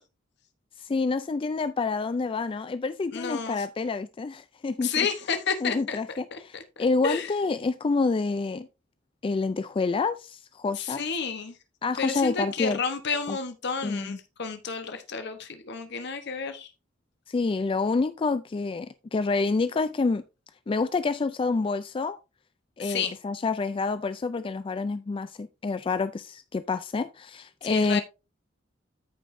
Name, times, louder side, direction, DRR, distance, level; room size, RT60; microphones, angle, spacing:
voice 1, 0.8-5.1 5.6-8.7 9.2-11.0 11.8-12.8 13.3-13.4 13.8-14.2 17.3-20.2 20.7-22.2 22.8-28.0, left 4 dB, 25° left, 0.3 m, -28 dB
voice 2, 3.1-3.7 4.8-6.0 6.3-7.3 10.7-11.6 12.0-16.7 22.8-23.2 27.6-28.0, left 5 dB, 60° left, 1.0 m, -31 dB
13.5 x 5.2 x 2.6 m
head